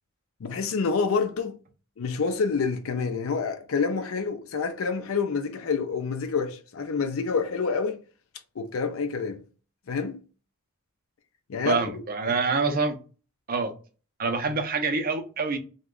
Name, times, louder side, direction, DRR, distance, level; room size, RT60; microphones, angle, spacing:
voice 1, 0.4-1.6 2.0-8.0 8.6-9.4 9.9-10.2 11.5-12.0, left 5 dB, 70° left, 0.4 m, -27 dB
voice 2, 11.6-13.0 13.5-13.7 14.2-15.6, right 4 dB, 40° right, 0.6 m, -26 dB
3.0 x 2.2 x 3.6 m
head